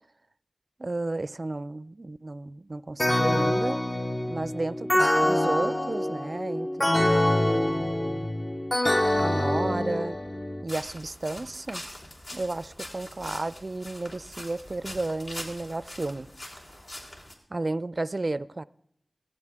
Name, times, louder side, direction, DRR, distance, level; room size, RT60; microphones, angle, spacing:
voice 1, 0.8-3.8 4.3-8.3 9.2-10.2 10.6-11.8 12.3-16.3 17.5-18.6, right 2 dB, 50° right, 0.4 m, -33 dB
sound 1, 3.0-10.6, left 1 dB, 30° left, 0.9 m, -25 dB
sound 2, 10.7-17.3, left 1 dB, 55° left, 3.0 m, -42 dB
16.5 x 14.5 x 3.6 m
wide cardioid pair, 45°, 0 cm